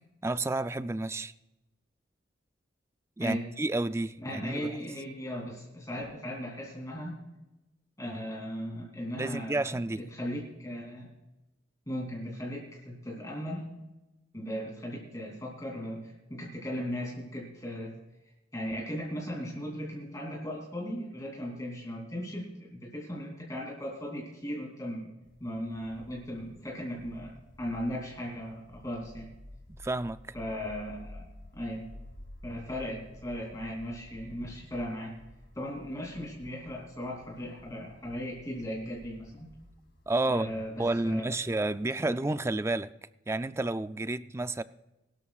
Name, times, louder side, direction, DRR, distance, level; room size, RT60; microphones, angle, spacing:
voice 1, 0.2-1.3 3.2-4.8 9.2-10.1 29.8-30.2 40.1-40.5 40.8-42.9 43.3-44.6, right 2 dB, 15° right, 0.4 m, -30 dB
voice 2, 3.2-3.5 4.2-7.1 8.0-11.1 11.9-13.7 14.3-17.9 18.5-25.1 25.4-29.3 30.3-31.9 32.4-35.2 35.5-39.5 40.3-41.3, equal, 20° left, 3.0 m, -37 dB
sound 1, 25.2-41.4, left 1 dB, 65° left, 2.0 m, -52 dB
22.5 x 13.0 x 2.4 m
head